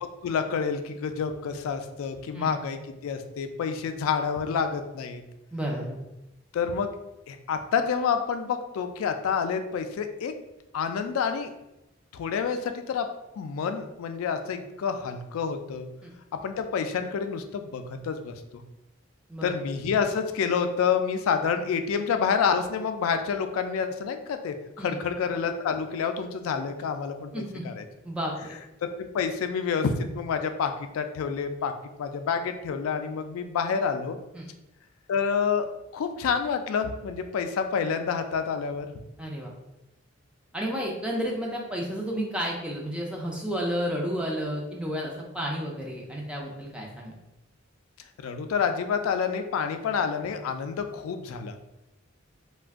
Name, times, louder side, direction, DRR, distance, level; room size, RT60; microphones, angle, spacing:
voice 1, 0.2-5.2 6.5-6.9 7.3-10.3 10.7-11.5 12.1-13.1 13.4-15.9 16.3-18.3 19.4-27.8 29.0-31.7 32.0-34.2 35.1-38.9 48.2-51.5, left 6 dB, 85° left, 8 dB, 0.3 m, -28 dB
voice 2, 5.5-6.0 16.0-16.1 19.3-19.5 24.8-25.0 27.3-27.6 28.0-28.6 34.3-34.4 39.2-39.5 40.5-47.2, equal, 5° right, -1 dB, 0.4 m, -31 dB
2.4 x 2.2 x 3.5 m, 0.92 s
head